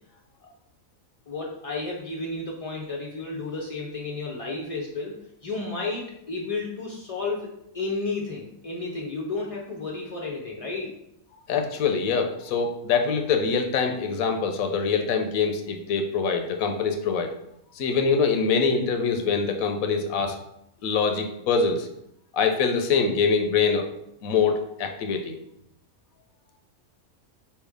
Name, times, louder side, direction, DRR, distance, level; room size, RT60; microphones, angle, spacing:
voice 1, 1.3-11.0, left 3 dB, 60° left, -3 dB, 0.3 m, -32 dB
voice 2, 11.5-17.3 17.7-20.4 20.8-21.9 22.3-23.9 24.2-25.4, left 5 dB, 85° left, 5 dB, 1.1 m, -24 dB
4.4 x 3.2 x 3.5 m, 0.78 s
omnidirectional pair, 1.4 m